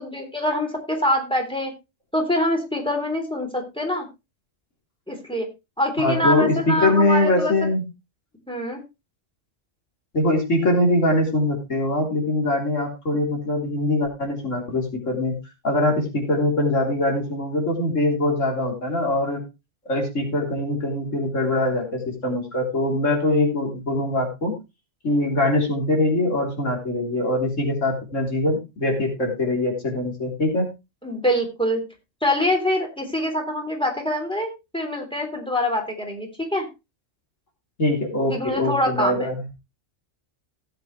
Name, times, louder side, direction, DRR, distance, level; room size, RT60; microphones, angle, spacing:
voice 1, 0.0-1.7 2.1-4.0 5.1-5.5 5.8-7.5 8.5-8.8 31.0-31.8 32.2-36.7 38.3-39.3, left 1 dB, 5° left, 1 dB, 3.3 m, -24 dB
voice 2, 6.0-7.8 10.1-15.4 15.6-19.4 19.9-24.5 25.0-30.7 37.8-39.5, left 1 dB, 90° left, 0 dB, 3.8 m, -22 dB
16.5 x 7.7 x 3.2 m, 0.25 s
omnidirectional pair, 1.3 m